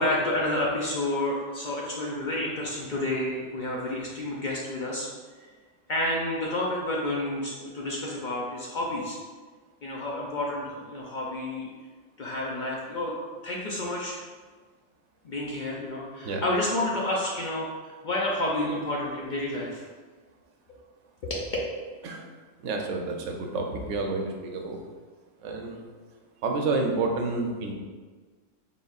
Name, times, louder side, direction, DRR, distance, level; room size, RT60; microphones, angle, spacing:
voice 1, 0.0-5.1 5.9-9.2 9.8-11.7 12.2-13.1 13.4-14.2 15.2-19.8 21.2-21.5, left 1 dB, 55° left, -4 dB, 0.5 m, -30 dB
voice 2, 22.6-24.8 25.4-25.8 26.4-27.7, right 3 dB, 75° right, 2 dB, 0.9 m, -29 dB
4.0 x 3.7 x 2.4 m, 1.4 s
omnidirectional pair, 1.3 m